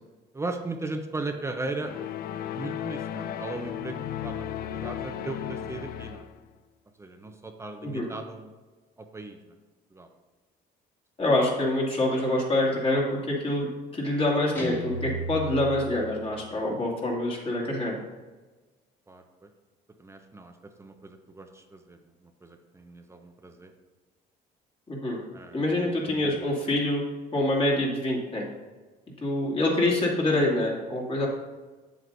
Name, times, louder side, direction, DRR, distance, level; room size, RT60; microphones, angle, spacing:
voice 1, 0.3-1.9 2.5-6.3 7.0-8.5 9.0-9.4 9.9-10.1 19.1-19.5 20.0-23.7 25.3-25.6 26.1-26.5, right 2 dB, 15° right, 5 dB, 0.7 m, -37 dB
sound 1, 1.8-6.4, left 10 dB, 60° left, 0.5 m, -35 dB
voice 2, 11.2-18.0 24.9-25.2 25.5-27.0 27.3-28.4 29.2-31.3, left 1 dB, 35° left, -2 dB, 2.3 m, -26 dB
Guitar, 14.6-16.6, right 1 dB, 15° left, 1.5 m, -35 dB
8.0 x 7.7 x 2.6 m, 1.3 s
cardioid pair, 110°, 17 cm